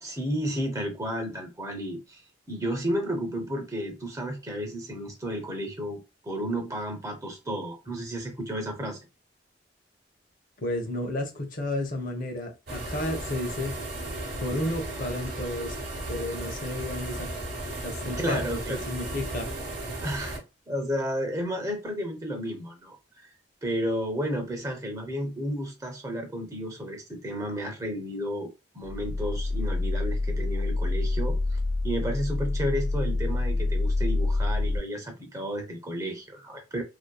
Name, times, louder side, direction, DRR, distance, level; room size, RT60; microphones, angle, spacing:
voice 1, 0.0-2.2 2.5-9.0 18.2-18.8 20.0-20.4 20.7-23.0 23.6-28.5 28.7-31.4 31.8-36.8, equal, 20° right, 0.6 m, -32 dB
voice 2, 10.6-13.8 14.4-15.8 16.1-17.3 17.8-18.6 18.9-19.5, left 1 dB, 50° left, 0.7 m, -32 dB
sound 1, 12.7-20.4, right 1 dB, 60° right, 0.8 m, -35 dB
sound 2, 28.8-34.8, left 2 dB, 75° left, 0.4 m, -27 dB
2.5 x 2.2 x 2.2 m
head